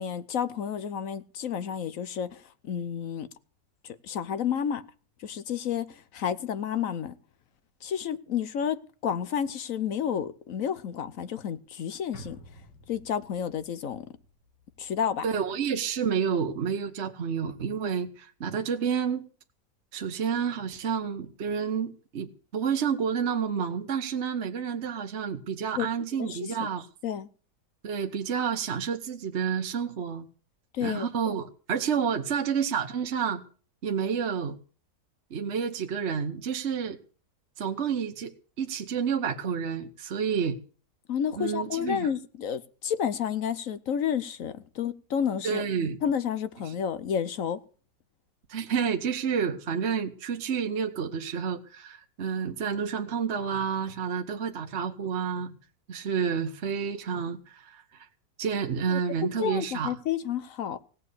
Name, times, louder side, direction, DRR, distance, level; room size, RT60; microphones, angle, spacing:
voice 1, 0.0-3.3 3.8-4.8 5.2-7.1 7.8-8.8 9.0-12.4 12.9-14.1 14.8-15.2 25.8-25.9 26.2-26.7 27.0-27.3 30.7-31.1 41.1-45.6 46.0-47.6 58.9-59.0 59.4-60.8, left 8 dB, 60° left, 1.1 m, -30 dB
sound 1, 12.1-16.6 16.9-17.0, equal, 80° left, 2.6 m, -52 dB
voice 2, 15.2-19.3 19.9-26.9 27.8-30.3 30.8-33.4 33.8-34.6 35.3-37.0 37.6-40.6 41.4-42.1 45.4-46.0 46.7-46.8 48.5-55.5 55.9-58.1 58.4-60.0, right 7 dB, 45° right, 1.1 m, -29 dB
17.5 x 7.4 x 8.3 m
omnidirectional pair, 1.9 m